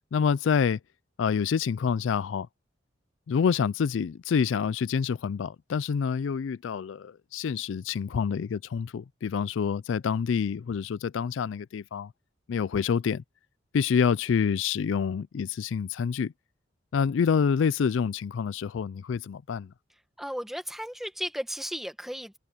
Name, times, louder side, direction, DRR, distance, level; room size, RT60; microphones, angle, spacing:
voice 1, 0.1-0.8 1.2-2.5 3.3-12.1 12.5-13.2 13.7-16.3 16.9-19.7, left 6 dB, 80° left, 0.4 m, -27 dB
voice 2, 20.2-22.4, equal, ahead, 1.7 m, -35 dB
head